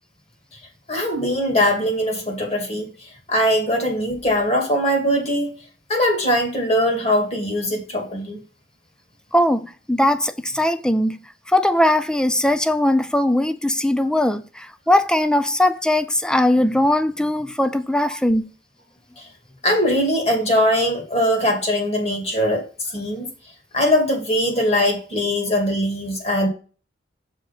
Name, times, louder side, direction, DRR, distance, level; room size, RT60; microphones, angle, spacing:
voice 1, 0.9-5.5 5.9-8.4 19.2-19.3 19.6-23.3 23.7-26.5, equal, 35° left, 2.2 m, -21 dB
voice 2, 9.3-11.2 11.5-18.4, left 1 dB, 5° left, 0.5 m, -19 dB
6.5 x 4.7 x 5.8 m
head